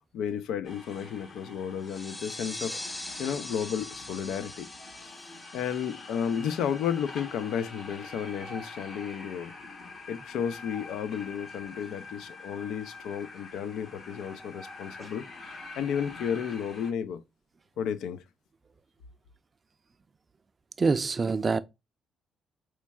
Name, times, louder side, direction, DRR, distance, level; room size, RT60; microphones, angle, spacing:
voice 1, 0.1-2.7 3.2-4.7 5.5-9.6 10.1-17.2 17.8-18.2, left 8 dB, 85° left, 0.4 m, -33 dB
sound 1, 0.6-16.9, left 3 dB, 50° left, 1.0 m, -45 dB
sound 2, 1.8-7.2, left 2 dB, 20° left, 0.6 m, -42 dB
voice 2, 20.8-21.6, right 4 dB, 35° right, 0.4 m, -25 dB
4.5 x 3.1 x 2.2 m
cardioid pair, 90°, 0 cm